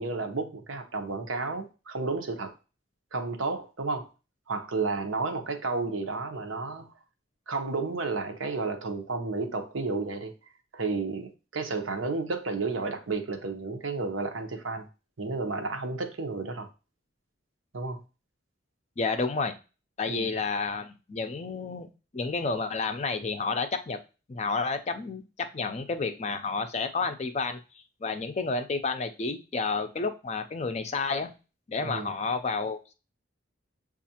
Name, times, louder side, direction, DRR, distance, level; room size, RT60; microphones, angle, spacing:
voice 1, 0.0-2.5 3.1-4.1 4.5-6.9 7.5-10.3 10.7-14.9 15.2-16.7 17.7-18.0 20.1-20.3 31.8-32.1, right 3 dB, 85° right, 6 dB, 0.7 m, -32 dB
voice 2, 19.0-19.5 20.0-21.9 22.1-24.0 24.3-27.6 28.0-31.3 31.7-32.9, left 4 dB, 35° left, 8 dB, 0.4 m, -30 dB
7.2 x 2.4 x 2.8 m, 0.32 s
head